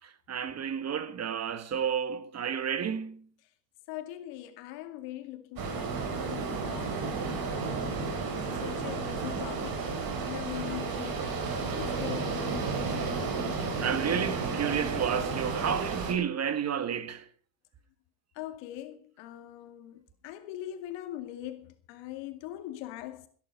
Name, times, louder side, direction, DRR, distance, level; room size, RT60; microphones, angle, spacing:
voice 1, 0.0-3.2 13.5-17.2, right 8 dB, 35° right, 1.6 m, -31 dB
voice 2, 3.9-7.0 7.6-8.2 8.4-13.3 18.4-23.3, left 13 dB, 70° left, 2.4 m, -42 dB
sound 1, 5.6-16.1, right 4 dB, 50° right, 5.4 m, -32 dB
17.0 x 11.0 x 5.3 m
supercardioid pair, 100°, 44 cm